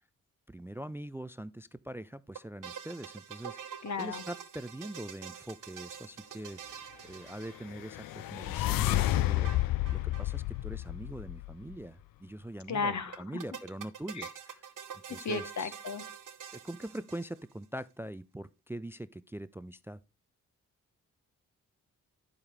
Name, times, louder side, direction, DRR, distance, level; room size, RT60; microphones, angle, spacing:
voice 1, 0.5-14.6 15.1-15.7 16.5-20.0, right 1 dB, 5° right, 0.3 m, -43 dB
sound 1, 2.3-8.1 9.4-10.3 10.5-10.6 10.8-10.9 13.1-17.6, right 8 dB, 60° right, 0.9 m, -46 dB
voice 2, 3.8-4.2 12.7-13.2 14.1-14.3 15.1-16.0, left 4 dB, 55° left, 1.0 m, -34 dB
sound 2, 7.6-11.8, left 15 dB, 70° left, 0.5 m, -31 dB
8.5 x 7.2 x 3.3 m
supercardioid pair, 40°, 35 cm